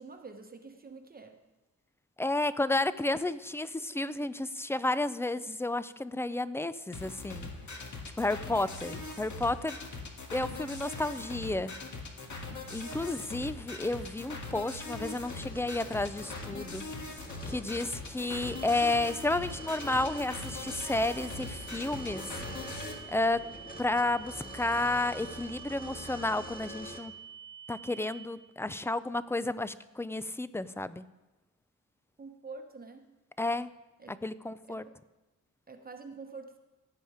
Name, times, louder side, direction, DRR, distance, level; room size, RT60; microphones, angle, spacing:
voice 1, 0.0-1.4 32.2-33.1 34.0-34.2 34.7-35.0 35.7-36.6, right 4 dB, 30° right, 5 dB, 1.0 m, -46 dB
voice 2, 2.2-7.5 8.2-9.8 10.3-11.7 12.7-16.8 17.5-22.3 23.1-23.4 23.8-27.1 27.7-31.0 33.4-33.7 34.2-34.8, left 2 dB, 10° left, 15 dB, 0.4 m, -31 dB
sound 1, 6.9-22.9, left 3 dB, 65° left, 1.9 m, -41 dB
sound 2, 15.2-27.0, equal, 25° left, 1.9 m, -46 dB
sound 3, 18.3-28.3, right 8 dB, 80° right, 1.2 m, -48 dB
17.0 x 8.7 x 4.9 m, 1.0 s
wide cardioid pair, 125°, 32 cm